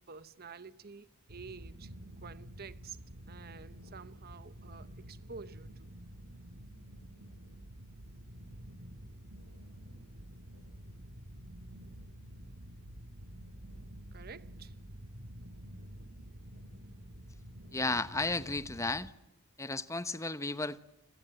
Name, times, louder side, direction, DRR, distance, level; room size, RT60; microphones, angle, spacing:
voice 1, 0.0-1.9 2.2-3.0 3.3-5.9 14.1-14.8, right 5 dB, 45° right, 0.9 m, -50 dB
sound 1, 1.3-19.1, equal, 70° right, 2.0 m, -49 dB
voice 2, 17.7-19.1 19.6-20.8, left 3 dB, 15° left, 1.0 m, -33 dB
29.5 x 22.0 x 7.7 m
head